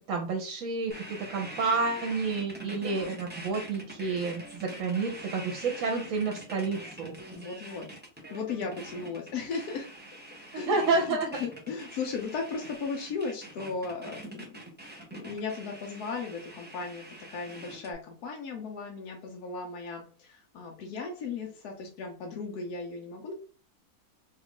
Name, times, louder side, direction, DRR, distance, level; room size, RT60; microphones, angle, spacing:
voice 1, 0.1-0.9 1.3-7.1 10.5-11.4, right 4 dB, 65° right, 2 dB, 1.0 m, -29 dB
sound 1, 0.9-17.9, right 1 dB, 15° right, 0.3 m, -44 dB
voice 2, 7.3-8.0 8.3-9.9 10.5-14.6 15.1-23.3, left 4 dB, 85° left, 1 dB, 1.2 m, -36 dB
3.0 x 2.4 x 3.5 m, 0.39 s
omnidirectional pair, 1.6 m